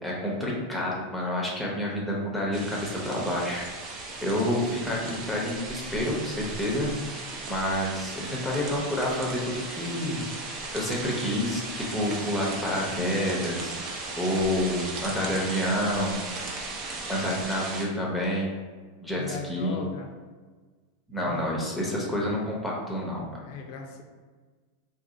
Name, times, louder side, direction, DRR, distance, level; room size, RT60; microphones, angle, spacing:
voice 1, 0.0-3.6 4.2-6.9 7.4-10.2 10.7-13.7 14.2-16.2 17.1-18.6 19.0-19.8 21.1-23.4, left 1 dB, 5° left, -4 dB, 0.8 m, -28 dB
sound 1, 2.5-17.8, right 3 dB, 35° right, 0.6 m, -37 dB
voice 2, 19.1-20.1 21.2-21.5 23.4-24.0, left 5 dB, 55° left, 3 dB, 0.6 m, -38 dB
2.7 x 2.6 x 3.9 m, 1.4 s
supercardioid pair, 135°, 0 cm